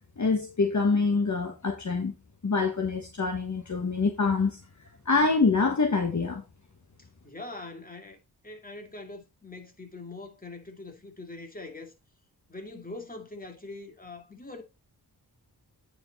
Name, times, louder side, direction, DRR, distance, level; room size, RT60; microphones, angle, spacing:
voice 1, 0.2-2.1 2.4-4.6 5.0-6.4, left 4 dB, 45° left, 1.3 m, -25 dB
voice 2, 7.0-8.2 8.4-11.9 12.5-14.6, left 2 dB, 20° left, 2.2 m, -43 dB
8.9 x 4.9 x 4.1 m
cardioid pair, 60°, 40 cm